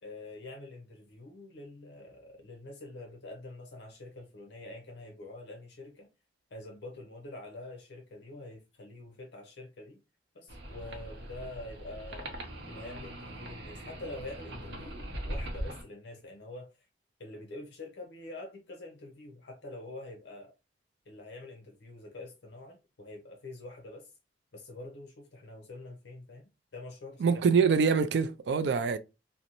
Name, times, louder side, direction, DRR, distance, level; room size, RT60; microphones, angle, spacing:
voice 1, 0.0-6.1 6.5-10.0 10.3-12.4 12.7-16.9 17.2-20.5 21.1-24.1 24.5-27.6, left 2 dB, 70° left, 0.5 m, -46 dB
sound 1, 10.5-15.8, right 1 dB, 85° right, 0.7 m, -41 dB
voice 2, 27.2-29.0, right 5 dB, 65° right, 0.3 m, -25 dB
2.5 x 2.0 x 2.8 m
head